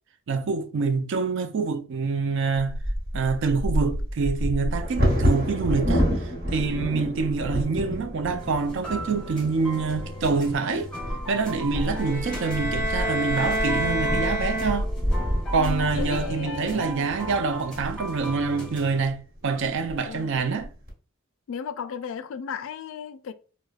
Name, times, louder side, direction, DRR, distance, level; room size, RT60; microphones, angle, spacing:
voice 1, 0.3-2.7 3.1-6.1 6.5-10.9 11.3-14.9 15.5-19.2 19.4-20.7, right 4 dB, 60° right, 0.4 m, -26 dB
Bird vocalization bird call bird song / Wind / Thunder, 2.6-18.4 19.1-19.2 19.5-19.9 20.4-20.9, equal, 45° right, 1.5 m, -29 dB
sound 1, 8.4-19.0, equal, 5° left, 0.9 m, -38 dB
sound 2, 11.9-15.2, right 1 dB, 15° right, 0.5 m, -29 dB
voice 2, 15.6-17.1 20.0-20.5 21.5-23.3, left 6 dB, 65° left, 0.3 m, -35 dB
4.7 x 2.1 x 2.3 m
head